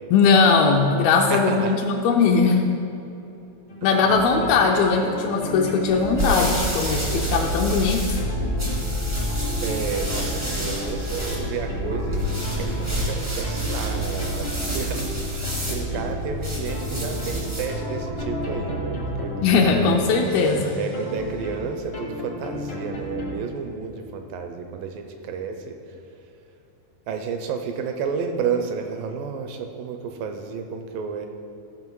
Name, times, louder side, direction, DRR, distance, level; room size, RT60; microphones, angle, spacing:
voice 1, 0.1-2.7 3.8-8.2 19.4-20.8, left 4 dB, 80° left, 0 dB, 2.4 m, -19 dB
voice 2, 1.2-1.8 3.8-4.0 4.3-4.4 9.6-20.4 20.8-26.3 27.1-31.3, right 6 dB, 80° right, 5 dB, 2.1 m, -31 dB
sound 1, 3.7-23.3, left 1 dB, 65° left, 0.6 m, -31 dB
sound 2, 5.9-17.8, right 1 dB, 35° right, 0.4 m, -29 dB
15.5 x 6.0 x 4.6 m, 2.9 s
omnidirectional pair, 4.4 m